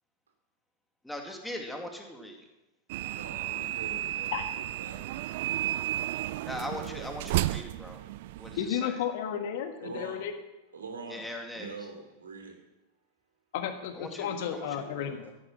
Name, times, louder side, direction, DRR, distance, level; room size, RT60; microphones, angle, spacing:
voice 1, 1.0-2.4 6.5-8.0 8.4-9.0 11.1-11.7 13.9-15.3, left 1 dB, 5° left, 2 dB, 2.3 m, -40 dB
sound 1, 2.9-8.7, right 14 dB, 50° right, 0.4 m, -33 dB
voice 2, 3.1-6.3 7.8-8.6 9.8-10.2 10.7-11.2 11.5-12.6 14.3-15.2, right 4 dB, 70° right, 3 dB, 3.0 m, -45 dB
voice 3, 8.6-10.3 13.5-15.2, left 9 dB, 50° left, 8 dB, 1.4 m, -33 dB
14.5 x 11.0 x 6.1 m, 1.0 s
figure-of-eight pair, 90°, 0 cm